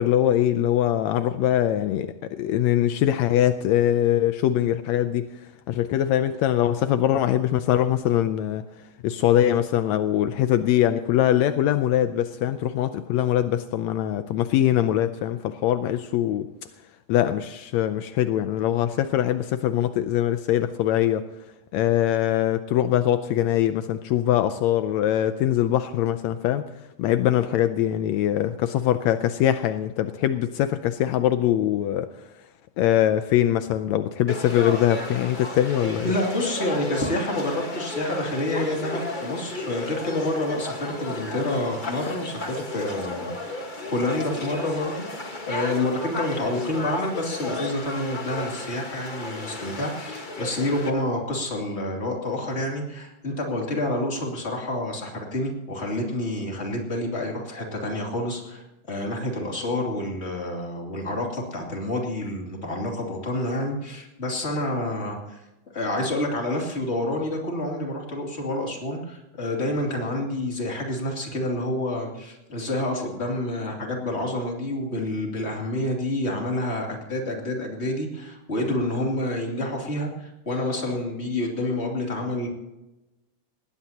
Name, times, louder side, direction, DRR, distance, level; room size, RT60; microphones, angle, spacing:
voice 1, 0.0-5.3 5.7-8.7 9.0-16.5 17.1-21.3 21.7-26.7 27.0-32.1 32.8-36.1, left 11 dB, 85° left, 1.5 m, -22 dB
Conversation / Crowd, 34.3-50.9, left 2 dB, 55° left, 0.5 m, -33 dB
voice 2, 36.0-43.6 43.9-45.0 45.5-65.4 65.7-82.5, left 1 dB, 20° left, 2.7 m, -28 dB
20.0 x 17.5 x 2.9 m
omnidirectional pair, 3.8 m